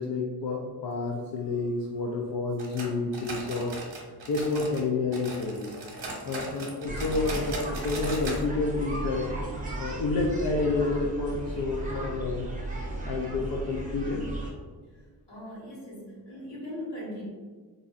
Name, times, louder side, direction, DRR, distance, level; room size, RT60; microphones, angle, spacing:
voice 1, 0.0-5.6 6.3-9.3 9.8-12.5 13.0-14.3, left 3 dB, 60° left, -1 dB, 0.5 m, -29 dB
sound 1, 2.6-4.9 5.1-8.4 8.7-8.8 9.2-9.3 9.9-10.0, right 2 dB, 75° right, 0.9 m, -38 dB
sound 2, 6.9-14.5, right 2 dB, 20° right, 0.6 m, -35 dB
voice 2, 14.9-17.3, left 1 dB, 85° left, -5 dB, 1.4 m, -40 dB
4.0 x 2.5 x 2.4 m, 1.5 s
wide cardioid pair, 145°, 40 cm